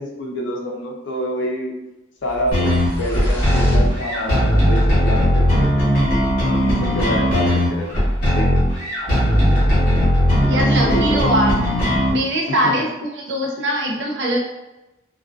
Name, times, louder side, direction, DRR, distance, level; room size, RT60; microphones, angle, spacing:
voice 1, 0.0-1.7 2.2-5.9 6.4-8.0 8.3-8.5 10.4-11.3 12.5-12.9, equal, 65° left, 0 dB, 0.5 m, -27 dB
sound 1, 2.3-4.7, equal, 10° left, 0.6 m, -26 dB
sound 2, 2.5-12.1, equal, 45° left, 0.9 m, -18 dB
voice 2, 10.5-11.5 11.9-12.9 13.1-14.4, equal, 60° right, 0 dB, 0.5 m, -21 dB
2.4 x 2.2 x 2.4 m, 1.0 s
head